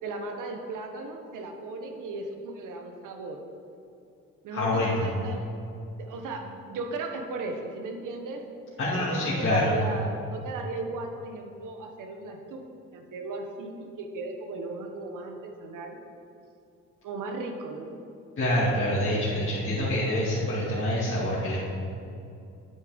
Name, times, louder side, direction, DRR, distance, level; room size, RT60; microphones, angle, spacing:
voice 1, 0.0-3.4 4.4-5.5 6.0-8.5 8.9-12.7 12.9-16.0 17.0-18.0, right 3 dB, 75° right, 4 dB, 1.4 m, -36 dB
voice 2, 4.5-5.1 8.8-9.8 18.4-21.6, left 1 dB, 40° left, -10 dB, 2.7 m, -26 dB
8.9 x 8.5 x 5.2 m, 2.6 s
supercardioid pair, 70°, 32 cm